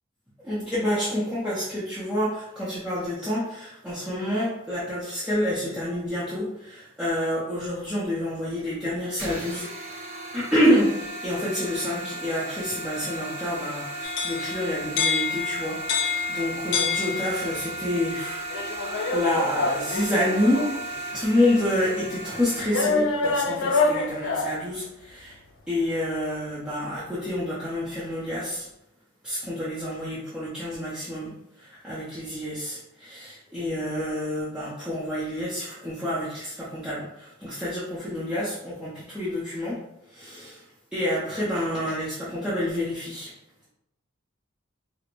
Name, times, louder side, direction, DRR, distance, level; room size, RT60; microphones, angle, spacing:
voice 1, 0.4-9.7 10.3-18.4 19.1-25.4 25.7-28.7 29.2-39.8 40.1-40.6 40.9-43.3, left 1 dB, 5° right, -11 dB, 0.6 m, -28 dB
sound 1, 9.2-22.6, right 1 dB, 70° right, 1.0 m, -35 dB
sound 2, 14.0-17.7 18.5-20.8 21.5-21.6 22.7-24.7, left 4 dB, 65° left, 0.3 m, -27 dB
4.3 x 2.1 x 2.5 m, 0.83 s
head